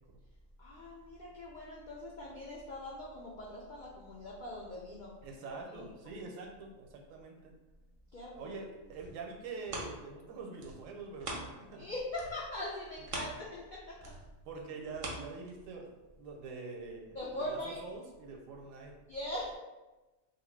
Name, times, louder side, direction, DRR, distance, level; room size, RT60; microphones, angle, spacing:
voice 1, 0.6-5.1 5.4-5.9 8.1-8.6 11.7-14.1 17.1-17.8 19.1-19.6, left 1 dB, 70° left, -5 dB, 0.4 m, -41 dB
voice 2, 5.2-7.5 8.3-11.9 14.4-19.0, right 4 dB, 75° right, 2 dB, 0.9 m, -45 dB
sound 1, 8.8-11.8 12.1-15.9 16.4-16.5, right 2 dB, 55° right, 0.6 m, -44 dB
2.8 x 2.4 x 3.2 m, 1.1 s
omnidirectional pair, 1.4 m